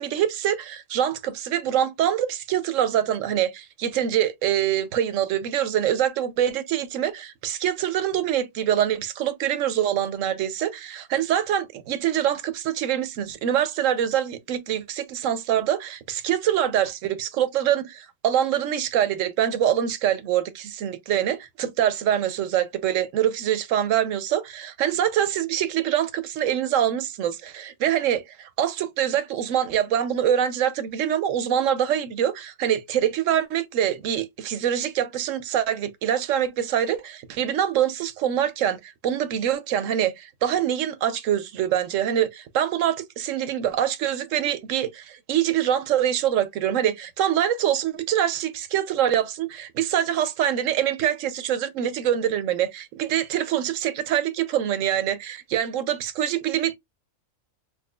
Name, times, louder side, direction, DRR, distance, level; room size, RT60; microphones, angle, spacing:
voice 1, 0.0-56.8, right 10 dB, 75° right, 0.9 m, -24 dB
4.2 x 2.8 x 2.2 m
omnidirectional pair, 1.4 m